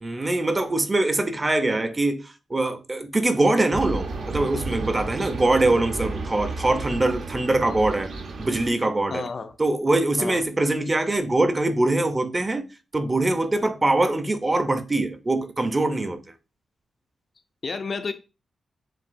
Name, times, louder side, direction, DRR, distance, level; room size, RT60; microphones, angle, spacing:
voice 1, 0.0-8.1 8.4-9.2 9.6-12.7 12.9-16.2, right 2 dB, 20° right, 0.5 m, -23 dB
sound 1, 3.7-8.7, right 3 dB, 70° right, 0.9 m, -32 dB
voice 2, 9.1-9.6 10.2-10.4 17.6-18.1, left 4 dB, 45° left, 0.4 m, -31 dB
7.2 x 2.7 x 2.5 m
wide cardioid pair, 135°, 0 cm